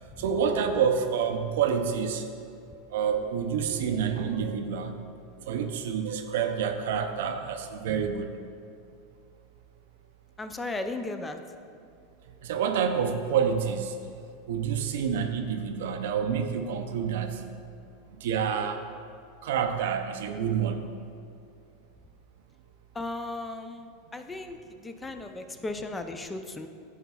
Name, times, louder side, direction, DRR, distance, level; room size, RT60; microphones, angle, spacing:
voice 1, 0.2-2.2 2.9-4.9 5.5-8.3 12.4-13.9 14.5-17.4 18.2-18.8 19.4-20.8, right 7 dB, 75° right, 7 dB, 0.5 m, -28 dB
voice 2, 10.4-11.4 22.9-26.7, left 2 dB, 15° left, 7 dB, 0.4 m, -36 dB
11.0 x 4.6 x 2.3 m, 2.5 s
hypercardioid pair, 105°, 0 cm